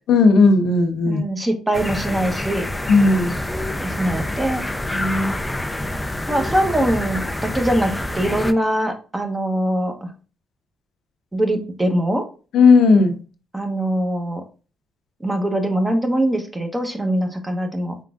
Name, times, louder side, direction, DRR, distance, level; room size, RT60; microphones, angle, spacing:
voice 1, 0.1-1.2 2.9-3.3 4.9-5.3 12.5-13.2, left 4 dB, 75° left, 0.6 m, -15 dB
voice 2, 1.1-2.7 3.8-4.6 6.3-10.1 11.3-12.2 13.5-14.4 15.2-18.0, right 1 dB, 15° right, 0.9 m, -22 dB
sound 1, 1.7-8.5, left 1 dB, 10° left, 0.4 m, -27 dB
4.8 x 3.6 x 2.4 m
cardioid pair, 90°, 0 cm